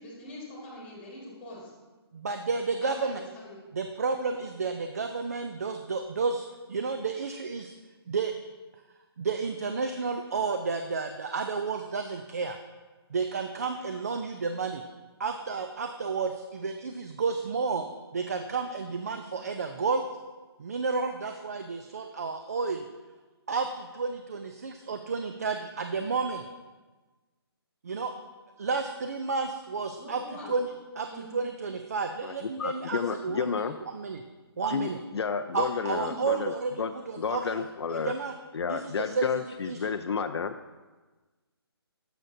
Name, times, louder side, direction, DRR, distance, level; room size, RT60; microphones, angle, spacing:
voice 1, 0.0-1.7 2.8-3.6 30.0-30.5 31.0-31.3 36.2-36.4, left 1 dB, 10° left, -4 dB, 1.6 m, -43 dB
voice 2, 2.1-3.2 3.7-7.7 8.1-8.3 9.2-12.6 13.1-14.8 15.2-17.8 18.1-20.0 20.6-22.8 23.5-26.4 27.8-28.1 28.6-30.2 30.5-30.7 31.0-34.2 34.6-35.0 35.5-36.7 37.1-38.3 38.7-39.3 39.6-39.9, right 4 dB, 35° right, 6 dB, 0.4 m, -31 dB
voice 3, 32.2-33.8 34.7-36.5 36.8-38.1 38.5-40.5, left 6 dB, 80° left, 8 dB, 0.4 m, -31 dB
12.0 x 6.6 x 2.6 m, 1.3 s
hypercardioid pair, 170°, 14 cm